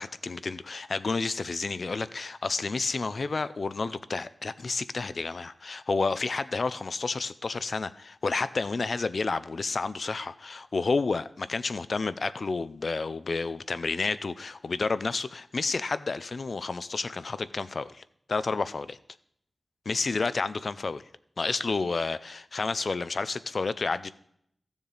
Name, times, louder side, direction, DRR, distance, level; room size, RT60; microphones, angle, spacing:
voice 1, 0.0-18.0 18.3-19.0 19.9-21.0 21.4-24.1, left 4 dB, 60° left, 0.4 m, -30 dB
15.0 x 7.1 x 4.0 m
wide cardioid pair, 95°, 0 cm